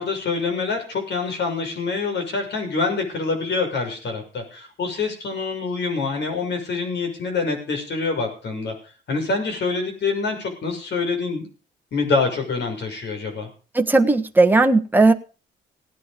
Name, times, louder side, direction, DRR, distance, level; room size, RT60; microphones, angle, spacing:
voice 1, 0.0-8.7 9.1-11.5 11.9-13.5, left 4 dB, 60° left, 5 dB, 6.6 m, -26 dB
voice 2, 13.7-15.1, right 3 dB, 10° right, 5 dB, 1.4 m, -16 dB
17.5 x 9.7 x 5.3 m, 0.37 s
cardioid pair, 90°, 20 cm